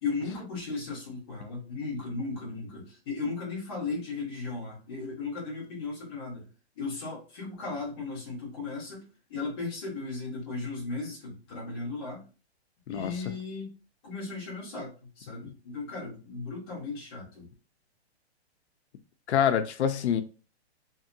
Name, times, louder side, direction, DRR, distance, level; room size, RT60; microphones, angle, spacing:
voice 1, 0.0-6.4 6.7-12.2 12.9-13.7 14.0-17.5, left 3 dB, 20° left, 1.0 m, -36 dB
voice 2, 19.3-20.2, left 8 dB, 85° left, 0.5 m, -25 dB
2.8 x 2.6 x 2.6 m
hypercardioid pair, 180°, 33 cm